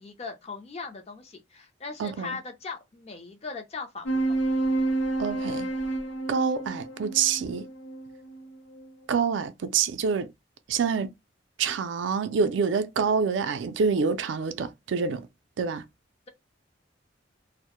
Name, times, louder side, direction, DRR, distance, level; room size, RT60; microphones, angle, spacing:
voice 1, 0.0-4.4, left 4 dB, 35° left, 0.4 m, -39 dB
voice 2, 2.0-2.4 5.2-5.7 6.3-7.6 9.1-10.3 10.7-11.1 11.6-15.3 15.6-15.8, right 5 dB, 70° right, 0.3 m, -26 dB
sound 1, 4.1-8.9, right 2 dB, 80° left, 0.7 m, -29 dB
2.1 x 2.0 x 2.9 m
head